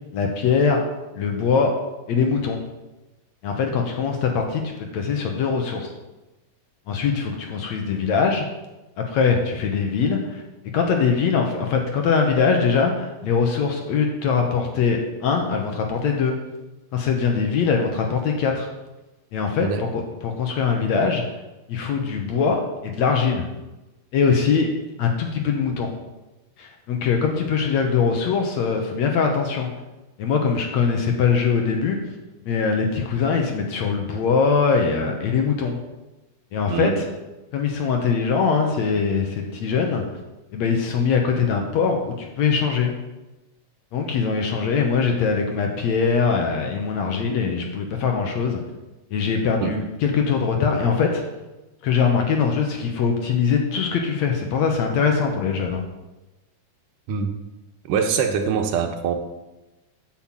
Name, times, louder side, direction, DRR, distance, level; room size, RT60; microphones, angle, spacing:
voice 1, 0.1-0.8 1.2-1.7 2.1-2.6 3.4-5.9 6.9-8.5 9.0-10.4 10.7-16.4 16.9-18.7 19.3-21.2 21.7-23.4 24.1-24.7 25.0-25.9 26.6-29.7 30.2-32.0 32.4-35.8 36.5-36.9 37.5-40.0 40.5-42.9 43.9-48.6 49.1-51.2 51.8-55.8, left 5 dB, 65° left, 2 dB, 2.1 m, -22 dB
voice 2, 57.9-59.2, right 6 dB, 75° right, 5 dB, 2.5 m, -23 dB
8.9 x 5.8 x 7.4 m, 1.0 s
omnidirectional pair, 3.8 m